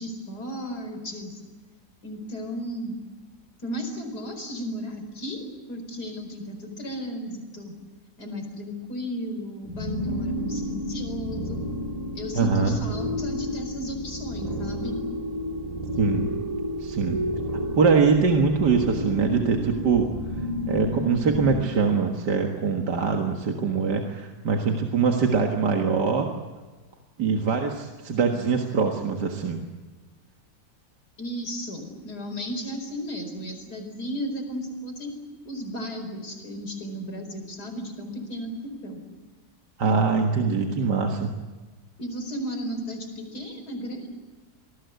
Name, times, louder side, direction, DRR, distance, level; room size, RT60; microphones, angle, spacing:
voice 1, 0.0-1.4 2.0-3.0 3.6-7.7 8.2-11.6 12.2-15.0 31.2-35.1 35.5-38.5 38.8-39.0 42.0-44.1, equal, 65° left, 6 dB, 5.2 m, -34 dB
sound 1, 9.6-21.6, equal, 20° right, 2.6 m, -31 dB
voice 2, 12.3-12.8 16.0-16.3 16.8-17.2 17.7-20.1 20.6-26.3 27.2-29.6 39.8-41.3, right 5 dB, 75° right, 2 dB, 2.3 m, -23 dB
27.5 x 19.5 x 8.2 m, 1.3 s
omnidirectional pair, 1.8 m